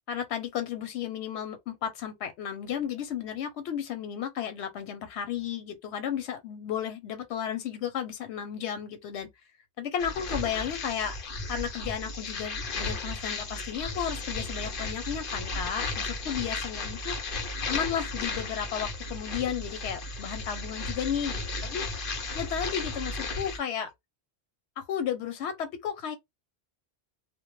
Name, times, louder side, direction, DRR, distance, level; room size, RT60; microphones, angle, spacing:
voice 1, 0.1-9.3 9.8-11.2 11.5-17.1 17.7-21.9 22.3-23.9 24.8-26.2, left 8 dB, 90° left, 0.9 m, -33 dB
sound 1, 10.0-23.6, left 3 dB, 60° left, 0.8 m, -34 dB
2.1 x 2.1 x 3.0 m
omnidirectional pair, 1.1 m